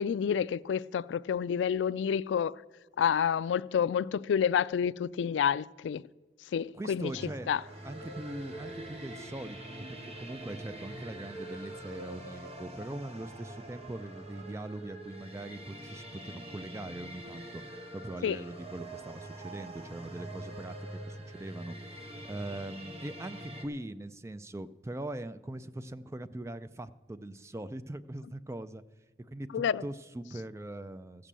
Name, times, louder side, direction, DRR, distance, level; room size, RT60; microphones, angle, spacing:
voice 1, 0.0-2.5 3.0-6.0 6.5-7.1 7.5-7.6 18.2-18.4 29.5-29.8, left 8 dB, 80° left, 0.3 m, -29 dB
voice 2, 6.7-7.5 7.8-17.6 17.9-28.8 29.3-31.3, right 1 dB, 15° right, 0.3 m, -41 dB
sound 1, 7.1-23.7, right 1 dB, 35° right, 1.2 m, -44 dB
14.5 x 6.8 x 7.4 m
head